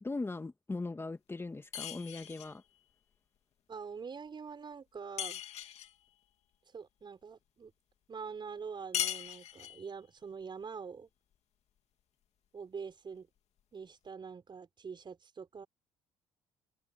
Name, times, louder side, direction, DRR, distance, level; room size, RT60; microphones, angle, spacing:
voice 1, 0.0-2.6, left 3 dB, 20° left, 1.5 m, -39 dB
sound 1, 1.7-2.6 5.2-6.0 8.9-9.9, left 10 dB, 60° left, 2.6 m, -38 dB
voice 2, 3.7-5.4 6.7-7.7 8.1-11.1 12.5-13.3 13.7-15.7, right 5 dB, 40° right, 5.8 m, -45 dB
open air
supercardioid pair, 70°, 12 cm